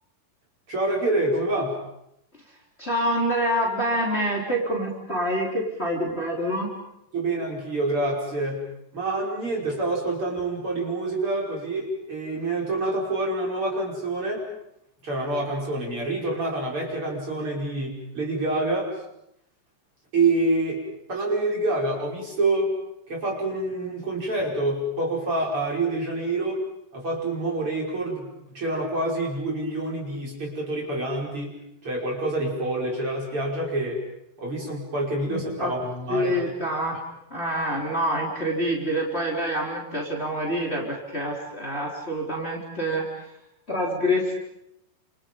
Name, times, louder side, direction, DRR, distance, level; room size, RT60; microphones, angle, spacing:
voice 1, 0.7-1.8 7.1-8.7 8.9-14.5 15.0-18.9 20.1-20.8 21.1-22.7 23.1-26.6 26.9-31.5 31.8-34.0 34.4-36.4, right 2 dB, 40° right, -2 dB, 6.5 m, -27 dB
voice 2, 2.8-6.7 35.3-35.7 36.1-37.0 37.3-43.0 43.7-44.3, equal, 20° left, -2 dB, 4.1 m, -26 dB
30.0 x 28.0 x 5.5 m, 0.81 s
omnidirectional pair, 3.7 m